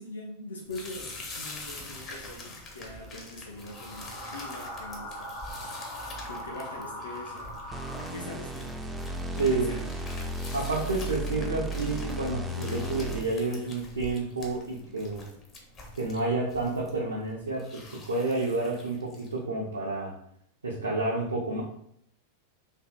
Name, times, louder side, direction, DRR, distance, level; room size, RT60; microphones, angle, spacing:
voice 1, 0.0-5.4 5.7-7.6 8.1-8.8 9.3-9.8, left 1 dB, 70° left, -2 dB, 0.5 m, -42 dB
sound 1, 0.7-19.4, left 2 dB, 30° left, 0.7 m, -45 dB
sound 2, 3.5-8.6, equal, 55° left, 1.3 m, -41 dB
sound 3, 7.7-13.5, right 1 dB, 10° right, 0.3 m, -35 dB
voice 2, 10.5-15.3 16.0-20.1 20.6-21.6, right 2 dB, 75° right, -3 dB, 0.5 m, -30 dB
3.4 x 2.6 x 2.2 m, 0.69 s
figure-of-eight pair, 90°, 0 cm